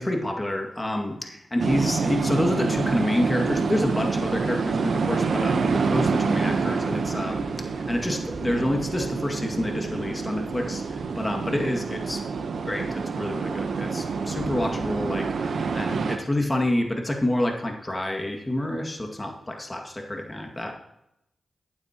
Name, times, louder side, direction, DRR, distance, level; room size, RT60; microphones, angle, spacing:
voice 1, 0.0-7.5 7.9-12.2 12.7-12.9 13.2-20.8, left 1 dB, 20° left, 2 dB, 2.0 m, -28 dB
sound 1, 1.6-16.2, right 4 dB, 70° right, 0.9 m, -27 dB
12.5 x 8.9 x 2.9 m, 0.85 s
cardioid pair, 45°, 0 cm